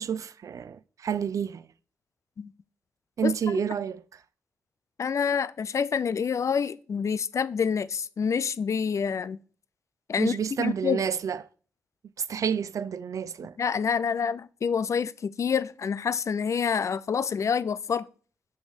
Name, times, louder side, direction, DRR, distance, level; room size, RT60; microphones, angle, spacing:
voice 1, 0.0-1.7 3.2-4.2 10.2-11.4 12.2-13.6, right 7 dB, 60° right, 0.4 m, -29 dB
voice 2, 3.2-3.6 5.0-9.4 10.1-11.0 13.6-18.0, left 6 dB, 55° left, 0.4 m, -27 dB
6.1 x 3.1 x 5.3 m
supercardioid pair, 45°, 6 cm